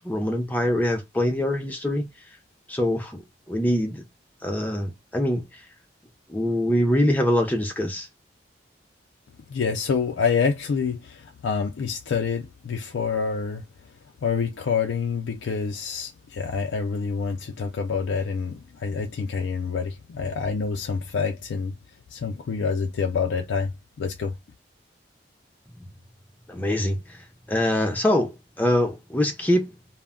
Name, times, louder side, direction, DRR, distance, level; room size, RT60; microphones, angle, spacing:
voice 1, 0.0-2.1 2.7-4.0 4.4-5.4 6.3-8.1 26.5-27.2 27.5-29.7, left 1 dB, 10° left, 0.4 m, -24 dB
voice 2, 9.5-13.7 14.2-21.7 22.1-23.7 24.0-24.3, left 5 dB, 85° left, 0.4 m, -27 dB
2.2 x 2.1 x 3.5 m
head